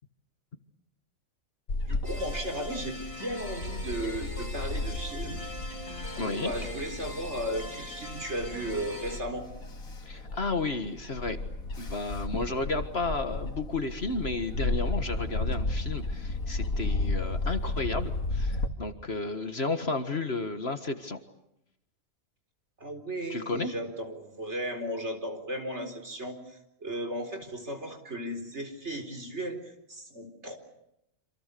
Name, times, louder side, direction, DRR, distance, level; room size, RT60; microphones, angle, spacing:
Bird / Wind, 1.7-18.7, left 2 dB, 80° left, 2.8 m, -34 dB
voice 1, 1.9-5.4 6.0-9.5 22.8-30.5, right 1 dB, 50° right, 6 dB, 4.5 m, -35 dB
sound 1, 2.0-9.2, left 1 dB, 20° left, 2.8 m, -42 dB
voice 2, 6.2-6.5 10.0-11.4 11.8-21.2 23.3-23.7, left 3 dB, 50° left, 8 dB, 1.9 m, -32 dB
28.0 x 27.0 x 6.9 m, 0.83 s
omnidirectional pair, 1.4 m